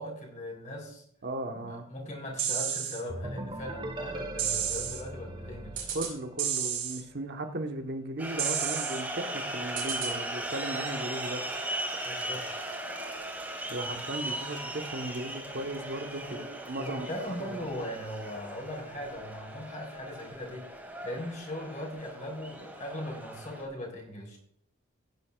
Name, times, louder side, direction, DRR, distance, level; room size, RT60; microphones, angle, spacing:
voice 1, 0.0-1.0 1.5-5.9 12.0-12.6 16.2-16.5 16.8-20.7 21.0-24.4, left 1 dB, 40° left, 0 dB, 3.5 m, -39 dB
voice 2, 1.2-1.9 5.9-11.4 13.7-16.4 16.7-17.6, right 1 dB, 55° right, 5 dB, 1.3 m, -36 dB
sound 1, 2.4-3.0 4.4-5.0 5.8-6.1 6.4-7.0 8.4-9.0 9.8-10.1, right 8 dB, 85° right, 4.2 m, -31 dB
sound 2, 3.1-6.8, right 1 dB, 25° right, 1.4 m, -40 dB
sound 3, 8.2-23.6, right 1 dB, 10° right, 2.5 m, -38 dB
16.0 x 9.5 x 2.4 m, 0.66 s
head